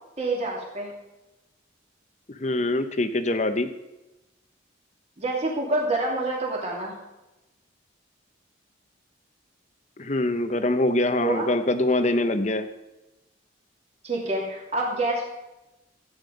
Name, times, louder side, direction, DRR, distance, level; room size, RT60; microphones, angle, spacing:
voice 1, 0.2-0.9 5.2-6.9 11.2-11.5 14.0-15.3, right 2 dB, 35° right, -3 dB, 2.8 m, -27 dB
voice 2, 2.3-3.7 10.0-12.7, left 2 dB, 35° left, 9 dB, 0.9 m, -24 dB
14.5 x 9.7 x 5.3 m, 1.0 s
head